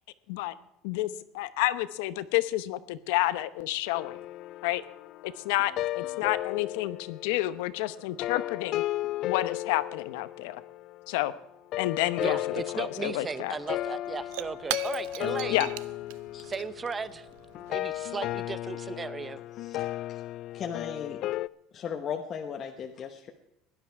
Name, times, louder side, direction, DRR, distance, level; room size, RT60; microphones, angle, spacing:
voice 1, 0.8-4.2 4.6-4.8 5.2-8.8 9.2-10.6 11.1-11.3 11.8-12.4 12.7-13.6 15.5-15.7, left 16 dB, 90° left, 14 dB, 0.9 m, -29 dB
sound 1, 3.9-11.1 11.7-21.5, left 15 dB, 45° left, 0.4 m, -35 dB
voice 2, 12.2-15.7 16.4-17.3 17.7-19.4, right 4 dB, 15° right, 16 dB, 0.7 m, -36 dB
Shatter / Crushing, 13.3-13.4 13.7-18.5, right 17 dB, 85° right, 0.6 m, -41 dB
voice 3, 19.6-20.2 20.5-21.2 21.7-23.3, left 7 dB, 30° left, 3 dB, 1.1 m, -37 dB
17.0 x 11.5 x 4.6 m, 0.84 s
cardioid pair, 160°, 0 cm